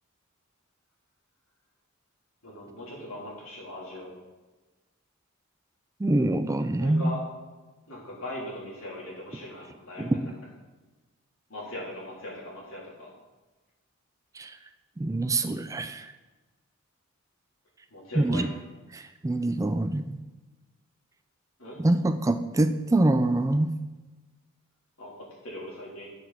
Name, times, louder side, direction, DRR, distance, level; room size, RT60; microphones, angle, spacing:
voice 1, 2.4-4.1 6.8-7.2 7.9-10.3 11.5-13.1 17.9-18.5 21.6-21.8 25.0-26.1, left 1 dB, 75° left, -4 dB, 3.3 m, -40 dB
voice 2, 6.0-7.1 10.0-10.2 14.3-14.6 15.0-16.1 18.2-18.5 18.9-20.2 21.8-23.7, right 2 dB, 15° right, 9 dB, 0.3 m, -25 dB
12.0 x 6.2 x 4.1 m, 1.2 s
head